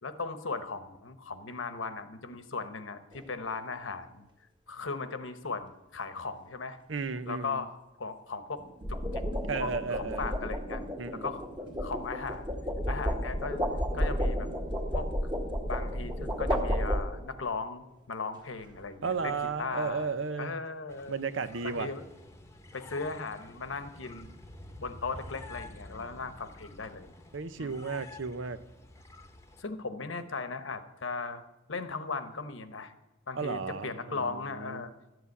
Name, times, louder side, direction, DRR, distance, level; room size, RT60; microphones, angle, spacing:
voice 1, 0.0-4.3 4.7-6.8 7.2-9.2 9.6-10.8 11.1-11.4 11.8-12.5 12.9-13.6 13.9-14.5 14.9-15.3 15.7-20.1 20.4-21.2 21.6-22.1 22.7-24.3 24.7-27.1 27.6-27.8 29.6-31.4 31.7-32.9 33.3-34.9, left 4 dB, 75° left, 10 dB, 1.1 m, -37 dB
sound 1, 3.1-3.4 8.6-17.5, equal, 25° right, 1.9 m, -32 dB
voice 2, 6.9-7.6 9.5-10.3 11.0-11.3 19.0-20.6 21.1-21.9 27.3-28.6 33.4-34.9, right 5 dB, 70° right, 13 dB, 0.7 m, -34 dB
sound 2, 20.9-29.6, left 2 dB, 15° left, 1.0 m, -49 dB
12.5 x 8.0 x 8.3 m, 0.95 s
head